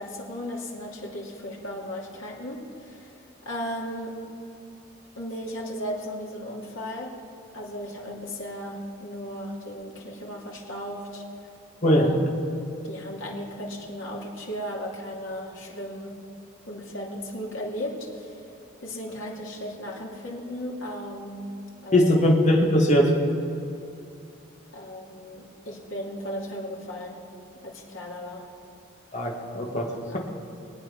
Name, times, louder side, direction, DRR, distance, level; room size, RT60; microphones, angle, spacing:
voice 1, 0.0-3.1 3.4-4.3 5.2-7.2 7.5-11.2 11.8-12.1 12.8-16.2 16.7-18.4 18.8-22.2 24.7-27.3 27.6-28.6 30.1-30.2, equal, 80° left, -3 dB, 2.7 m, -36 dB
voice 2, 21.9-23.1 29.1-30.2, equal, 35° left, -2 dB, 2.3 m, -20 dB
24.0 x 9.2 x 5.6 m, 2.6 s
head